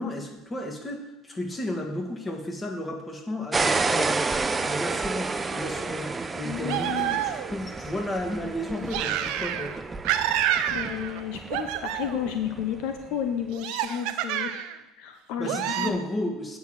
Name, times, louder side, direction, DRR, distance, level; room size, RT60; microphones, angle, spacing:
voice 1, 0.0-4.3 4.6-9.7 15.4-16.6, left 1 dB, 20° left, 3 dB, 2.0 m, -33 dB
sound 1, 3.5-13.2, right 3 dB, 20° right, 0.6 m, -31 dB
voice 2, 6.4-7.2 10.7-14.6 15.0-15.9, left 9 dB, 70° left, 6 dB, 0.8 m, -32 dB
sound 2, 6.7-7.7 8.9-9.8 10.0-11.2 11.5-12.3 13.5-14.8 15.4-15.9, right 11 dB, 70° right, 0.7 m, -28 dB
9.1 x 4.8 x 7.6 m, 0.98 s
hypercardioid pair, 80°, 0 cm